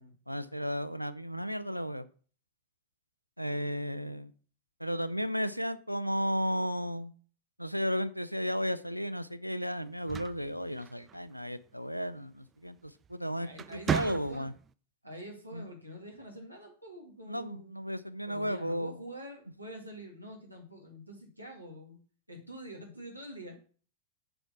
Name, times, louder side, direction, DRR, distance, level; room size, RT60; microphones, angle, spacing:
voice 1, 0.3-2.1 3.4-4.3 4.8-7.1 7.6-13.5 13.9-14.5 15.5-15.7 17.3-19.0, equal, 90° left, 15 dB, 0.5 m, -34 dB
sound 1, 9.9-11.4 12.9-13.1 13.5-14.7, right 8 dB, 20° right, 0.4 m, -35 dB
voice 2, 13.3-14.5 15.0-17.7 18.3-22.0 22.3-23.6, equal, 90° right, 1 dB, 2.2 m, -46 dB
7.8 x 4.4 x 5.9 m, 0.41 s
figure-of-eight pair, 90°, 0 cm